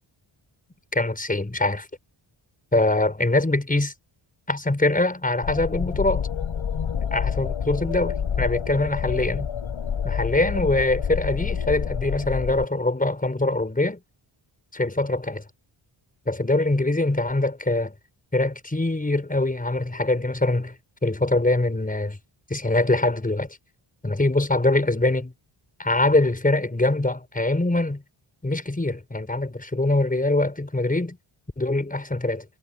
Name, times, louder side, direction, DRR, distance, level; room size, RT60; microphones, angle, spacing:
voice 1, 0.9-1.9 2.7-3.9 4.5-6.3 7.1-9.5 10.0-14.0 14.7-15.4 16.3-18.0 18.3-20.8 21.0-22.2 22.5-23.6 24.0-25.3 25.8-28.0 28.4-31.2 31.6-32.5, left 2 dB, 15° left, 5.6 m, -23 dB
sound 1, 5.4-12.6, left 7 dB, 75° left, 5.1 m, -28 dB
wide cardioid pair, 145°, 50 cm